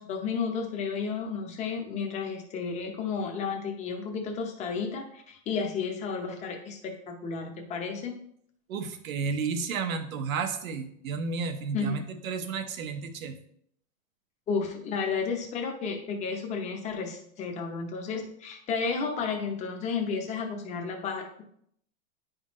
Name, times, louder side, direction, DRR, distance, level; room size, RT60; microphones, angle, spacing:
voice 1, 0.0-8.2 11.7-12.0 14.5-21.4, left 5 dB, 15° left, 3 dB, 0.8 m, -32 dB
voice 2, 8.7-13.4, right 5 dB, 85° right, 8 dB, 1.2 m, -32 dB
9.8 x 5.2 x 3.1 m, 0.69 s
supercardioid pair, 160°, 40 cm